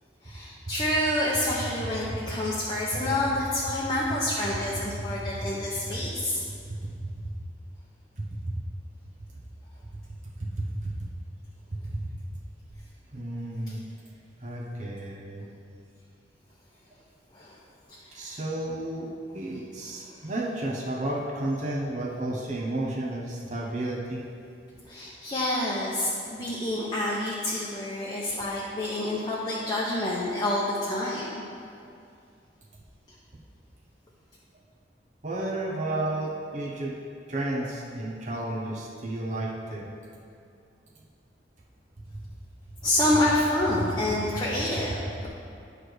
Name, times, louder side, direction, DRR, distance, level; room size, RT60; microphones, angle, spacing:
voice 1, 0.2-6.4 17.3-17.5 17.9-18.3 24.9-31.3 42.8-45.3, left 1 dB, 25° left, -6 dB, 0.7 m, -28 dB
voice 2, 8.2-8.6 10.4-11.0 11.8-12.1 13.1-13.8 14.4-15.5 18.1-24.2 35.2-37.0 37.3-40.0, right 1 dB, 45° right, -3 dB, 0.8 m, -32 dB
9.5 x 3.3 x 6.1 m, 2.4 s
head